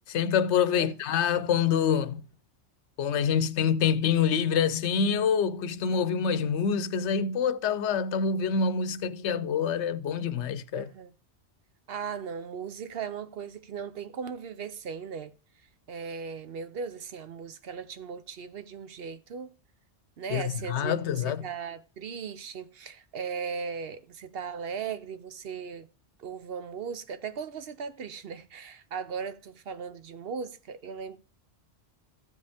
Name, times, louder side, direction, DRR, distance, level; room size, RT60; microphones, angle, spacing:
voice 1, 0.1-2.2 3.0-10.9 20.3-21.5, left 7 dB, 80° left, 0.9 m, -26 dB
voice 2, 10.7-11.1 11.9-15.3 15.9-19.5 20.2-20.9 21.2-25.9 26.2-31.2, right 6 dB, 60° right, 0.9 m, -37 dB
15.0 x 5.2 x 3.4 m
omnidirectional pair, 1.2 m